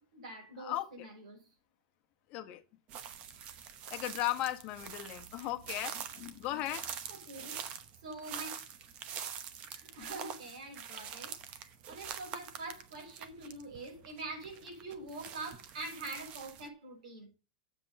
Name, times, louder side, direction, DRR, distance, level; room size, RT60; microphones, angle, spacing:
voice 1, 0.0-1.4 7.1-7.6 8.0-8.6 9.7-17.3, right 2 dB, 80° right, 5.5 m, -45 dB
voice 2, 0.6-1.1 2.3-2.6 3.9-6.9, left 15 dB, 35° left, 1.3 m, -37 dB
sound 1, 2.9-16.7, right 8 dB, 30° right, 0.9 m, -45 dB
7.6 x 7.1 x 5.4 m
supercardioid pair, 165°, 4 cm